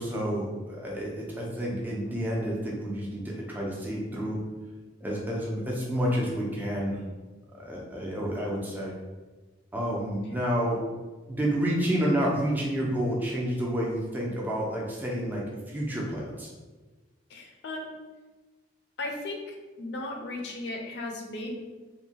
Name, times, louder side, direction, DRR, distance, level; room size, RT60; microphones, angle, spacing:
voice 1, 0.0-4.4 5.0-7.0 7.5-8.9 9.7-10.8 11.3-16.5, equal, 10° right, -4 dB, 0.4 m, -29 dB
voice 2, 17.3-17.9 19.0-21.6, left 2 dB, 65° left, 1 dB, 0.4 m, -36 dB
2.7 x 2.1 x 2.8 m, 1.3 s
head